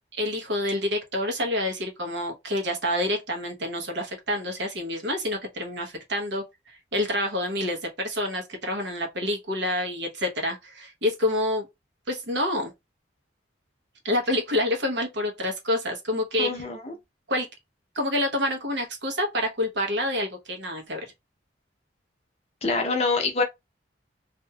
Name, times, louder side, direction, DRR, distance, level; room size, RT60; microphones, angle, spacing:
voice 1, 0.1-11.7 12.1-12.7 14.0-16.7 17.3-17.5 17.9-21.0, left 1 dB, 65° right, 1.0 m, -28 dB
voice 2, 16.4-16.9 22.6-23.4, left 3 dB, 35° left, 0.6 m, -25 dB
2.8 x 2.6 x 2.2 m
head